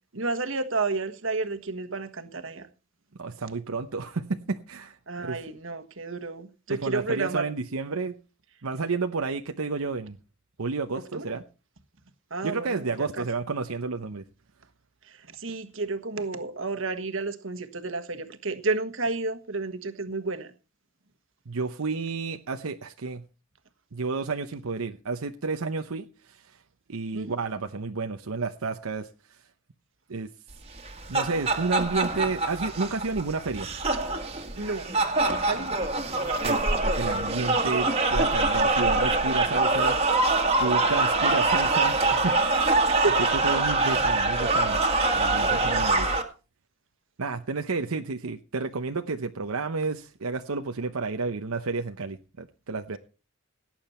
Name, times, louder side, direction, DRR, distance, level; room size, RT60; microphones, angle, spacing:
voice 1, 0.1-2.7 5.1-7.4 11.1-11.2 12.3-13.3 15.1-20.5 27.1-27.4 34.6-34.9 35.3-35.8 42.9-43.2, right 3 dB, 65° right, 1.5 m, -31 dB
voice 2, 3.2-5.0 5.2-5.4 6.8-8.1 8.6-10.2 10.6-11.4 12.4-14.2 21.5-23.2 23.9-26.6 26.9-29.1 30.1-30.3 31.1-33.7 36.4-40.2 40.6-42.7 43.4-44.8 45.1-46.1 47.2-53.0, right 4 dB, 85° right, 0.8 m, -31 dB
sound 1, 30.8-46.2, right 2 dB, 30° right, 1.8 m, -24 dB
17.5 x 8.8 x 4.4 m
head